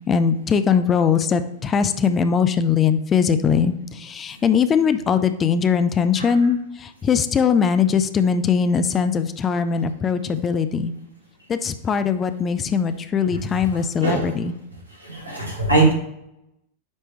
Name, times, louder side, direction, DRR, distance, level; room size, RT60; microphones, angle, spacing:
voice 1, 0.1-10.9 11.5-14.5, left 6 dB, 25° left, 10 dB, 0.4 m, -20 dB
voice 2, 14.0-14.3 15.1-15.9, right 3 dB, 85° right, -2 dB, 1.9 m, -20 dB
9.4 x 3.3 x 3.1 m, 0.79 s
figure-of-eight pair, 90°, 0 cm